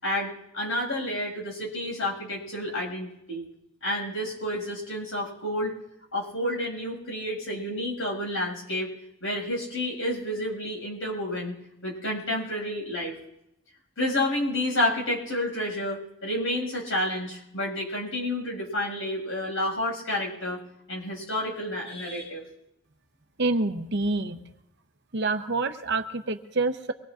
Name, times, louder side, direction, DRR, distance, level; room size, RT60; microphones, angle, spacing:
voice 1, 0.0-3.4 3.8-5.7 6.1-8.9 9.2-11.5 11.8-13.1 14.0-20.6 20.9-22.4, left 1 dB, 65° left, -2 dB, 6.7 m, -30 dB
voice 2, 23.4-24.4 25.1-26.9, right 3 dB, 50° right, 7 dB, 0.8 m, -27 dB
24.5 x 20.0 x 2.5 m, 0.84 s
head